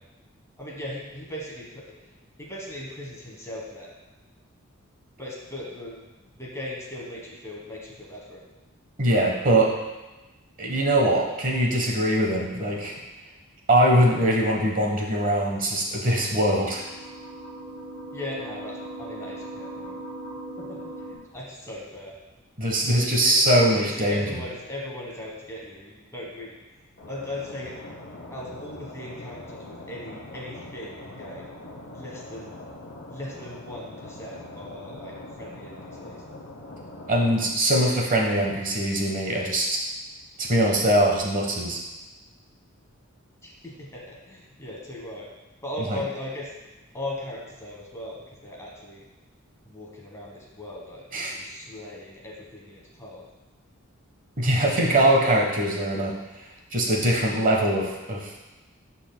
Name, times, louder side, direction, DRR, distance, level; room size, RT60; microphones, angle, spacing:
voice 1, 0.6-1.8 2.4-3.9 5.2-8.4 18.1-20.0 20.6-22.1 22.9-23.4 23.7-26.5 27.1-27.7 28.3-31.5 31.9-32.6 33.1-36.2 43.4-45.3 45.6-46.5 46.9-49.0 49.6-53.3, left 1 dB, 15° left, -3 dB, 1.3 m, -38 dB
voice 2, 9.0-9.7 10.6-12.9 13.7-16.9 22.6-24.3 37.1-39.8 40.4-41.8 45.9-46.0 51.1-51.3 54.4-56.2 56.7-58.3, right 1 dB, 40° right, -1 dB, 1.1 m, -22 dB
sound 1, 15.9-21.1, right 1 dB, 85° right, 1.2 m, -39 dB
sound 2, 27.0-37.5, left 2 dB, 60° left, 0.8 m, -42 dB
12.0 x 4.2 x 2.2 m, 1.1 s
head